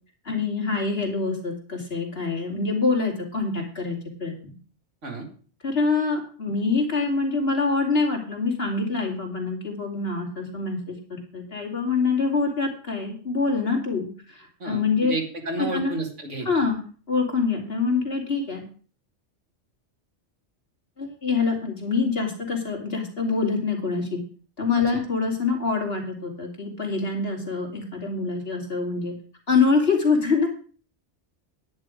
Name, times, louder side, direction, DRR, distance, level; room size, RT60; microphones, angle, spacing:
voice 1, 0.2-4.3 5.6-15.1 15.6-15.9 16.4-16.8 17.1-18.6 21.0-24.2 24.6-29.1 29.5-30.5, left 4 dB, 55° left, 1 dB, 3.0 m, -25 dB
voice 2, 14.6-16.5, right 2 dB, 80° right, 2 dB, 2.6 m, -31 dB
10.5 x 9.9 x 5.0 m, 0.41 s
omnidirectional pair, 1.2 m